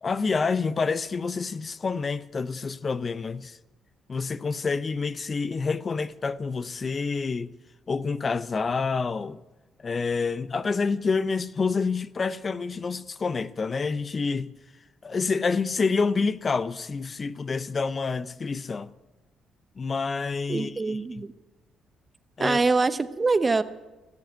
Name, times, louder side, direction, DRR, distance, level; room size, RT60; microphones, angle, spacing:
voice 1, 0.0-3.6 4.1-7.5 7.9-9.4 9.8-14.5 15.0-18.9 19.8-21.2 22.4-22.6, left 4 dB, 40° left, 0.6 m, -28 dB
voice 2, 20.5-21.3 22.4-23.6, right 3 dB, 30° right, 0.9 m, -24 dB
18.0 x 7.9 x 9.3 m
supercardioid pair, 55°, 0 cm